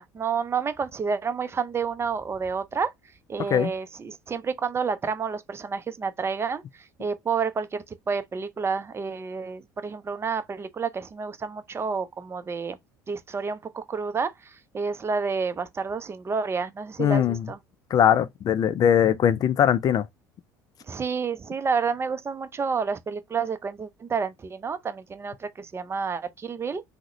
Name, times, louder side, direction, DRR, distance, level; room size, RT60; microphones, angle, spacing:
voice 1, 0.0-2.9 3.3-12.8 13.1-17.6 20.9-26.8, right 5 dB, 30° right, 0.5 m, -29 dB
voice 2, 17.0-17.4 17.9-20.1, left 9 dB, 45° left, 0.4 m, -20 dB
3.6 x 2.1 x 2.9 m
hypercardioid pair, 75°, 9 cm